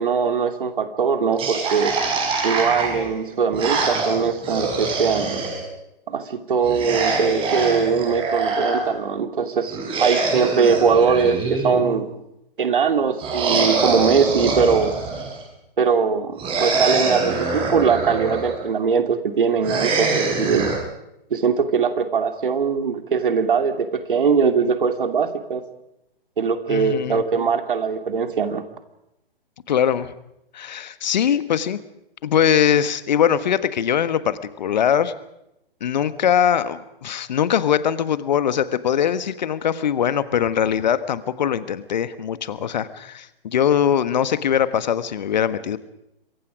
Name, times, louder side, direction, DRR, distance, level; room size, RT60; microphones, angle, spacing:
voice 1, 0.0-1.9 2.4-5.5 6.1-12.1 12.6-14.9 15.8-20.8 21.3-25.6 26.4-28.6, right 6 dB, 60° right, 8 dB, 2.8 m, -21 dB
sound 1, 1.4-5.6 6.6-8.8 9.7-12.0 13.2-15.4 16.4-18.6 19.6-20.8, right 3 dB, 20° right, 5.7 m, -24 dB
voice 2, 26.7-27.2 29.7-30.1 30.5-31.8 32.2-35.1 35.8-45.8, left 9 dB, 50° left, 14 dB, 1.5 m, -21 dB
27.0 x 22.0 x 5.2 m, 0.84 s
figure-of-eight pair, 125°, 29 cm